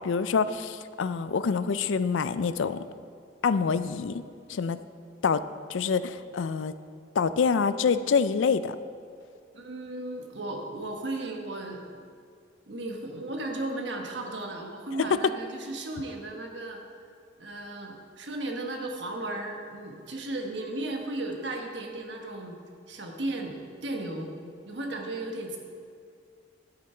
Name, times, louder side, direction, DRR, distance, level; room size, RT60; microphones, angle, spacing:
voice 1, 0.0-2.8 3.4-4.2 4.5-4.8 5.2-5.4 5.7-6.7 7.2-8.8 15.0-15.1, left 5 dB, 80° left, 13 dB, 0.4 m, -26 dB
voice 2, 9.5-11.8 12.7-16.8 17.4-22.6 22.9-24.3 24.7-25.6, right 2 dB, 65° right, 2 dB, 1.3 m, -35 dB
10.5 x 9.0 x 4.4 m, 2.3 s
head